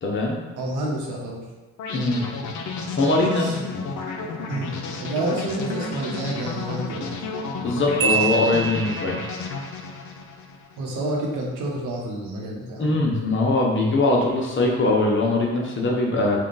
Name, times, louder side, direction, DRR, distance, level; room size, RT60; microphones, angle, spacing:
voice 1, 0.0-0.4 1.9-2.2 3.0-3.7 7.6-9.2 12.8-16.4, left 2 dB, 40° left, -1 dB, 0.8 m, -21 dB
voice 2, 0.5-1.4 3.4-3.5 4.4-7.1 10.8-12.9, right 1 dB, 85° right, -2 dB, 1.0 m, -29 dB
sound 1, 1.8-10.8, left 3 dB, 70° left, 0.5 m, -32 dB
Marimba xylophone, 8.0-9.4, right 6 dB, 45° right, 0.4 m, -25 dB
3.6 x 2.3 x 3.9 m, 1.2 s
cardioid pair, 90°, 30 cm